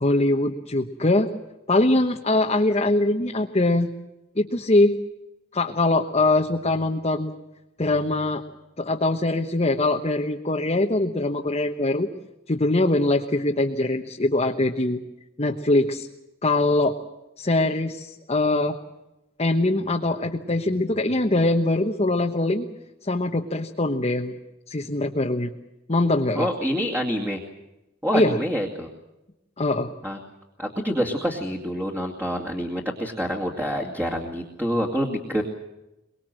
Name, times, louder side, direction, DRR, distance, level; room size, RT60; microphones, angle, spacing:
voice 1, 0.0-1.3 1.7-3.9 4.4-5.0 5.5-7.3 7.8-8.4 8.8-12.1 12.5-15.0 15.4-16.1 16.4-17.0 17.4-18.7 19.4-22.7 23.0-24.3 24.7-25.5 25.9-26.5 28.1-28.4 29.6-29.9, left 2 dB, 30° left, 2 dB, 1.2 m, -22 dB
voice 2, 26.3-27.4 28.0-28.9 30.0-30.2 30.6-35.4, equal, 10° right, 0 dB, 2.3 m, -27 dB
24.0 x 21.5 x 7.7 m, 0.96 s
head